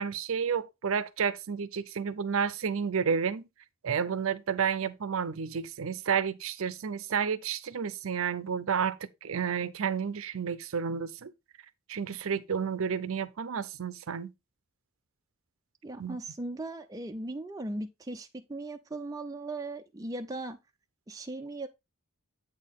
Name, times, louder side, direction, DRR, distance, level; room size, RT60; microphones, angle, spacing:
voice 1, 0.0-3.4 3.8-11.3 11.9-14.3 16.0-16.2, right 6 dB, 70° right, 0.5 m, -31 dB
voice 2, 15.8-20.6 21.1-21.7, right 2 dB, 15° right, 0.4 m, -38 dB
8.0 x 4.3 x 3.5 m
head